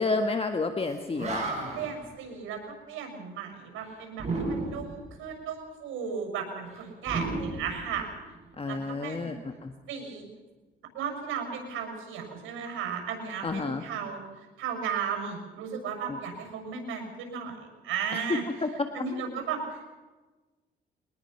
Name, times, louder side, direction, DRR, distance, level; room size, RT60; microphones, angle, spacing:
voice 1, 0.0-1.5 8.6-9.7 13.4-13.8 16.1-16.2 18.1-18.2 18.6-18.7, left 3 dB, 30° left, 6 dB, 1.5 m, -30 dB
Animal, 0.8-0.9 1.2-2.0 4.2-5.0 7.0-8.4, right 3 dB, 35° right, 7.9 m, -33 dB
voice 2, 1.7-8.1 8.7-9.3 9.9-10.2 10.9-18.4 18.9-19.9, right 6 dB, 90° right, 3 dB, 6.7 m, -35 dB
23.5 x 19.5 x 5.9 m, 1.2 s
cardioid pair, 90°, 20 cm